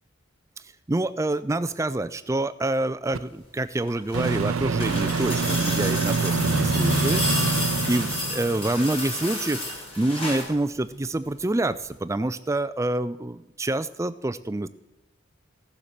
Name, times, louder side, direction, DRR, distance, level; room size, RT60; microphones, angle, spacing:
voice 1, 0.9-9.6 10.0-14.7, right 2 dB, 15° right, 13 dB, 0.3 m, -27 dB
Microwave oven, 3.1-3.2 4.1-8.4, right 5 dB, 80° right, 0.5 m, -26 dB
sound 1, 3.8-10.5 11.8-11.9, left 1 dB, 25° left, 3.3 m, -31 dB
sound 2, 6.4-9.6, left 1 dB, 45° left, 1.7 m, -30 dB
15.5 x 7.2 x 6.6 m, 0.94 s
head